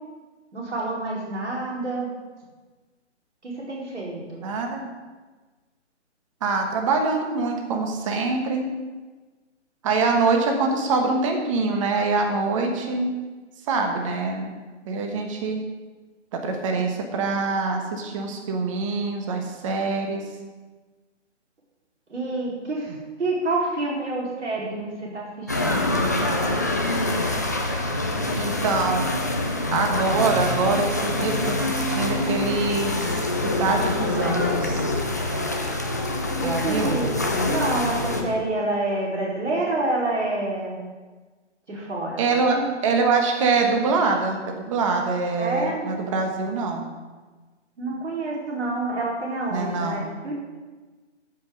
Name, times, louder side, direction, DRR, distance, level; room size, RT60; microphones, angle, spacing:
voice 1, 0.5-2.1 3.4-4.4 22.1-26.5 36.4-37.2 37.5-40.8 41.7-42.6 45.4-45.9 47.8-50.3, right 2 dB, 70° right, -4 dB, 4.3 m, -28 dB
voice 2, 4.4-4.8 6.4-8.7 9.8-13.1 13.7-14.5 14.8-15.6 16.3-20.2 28.4-29.0 29.7-33.1 33.4-34.9 36.4-37.0 42.2-42.6 42.8-44.4 44.7-46.9 49.5-50.1, right 4 dB, 25° right, 3 dB, 1.3 m, -24 dB
sound 1, 25.5-38.2, left 2 dB, 15° left, 0.4 m, -25 dB
14.0 x 5.6 x 6.3 m, 1.3 s
figure-of-eight pair, 150°, 36 cm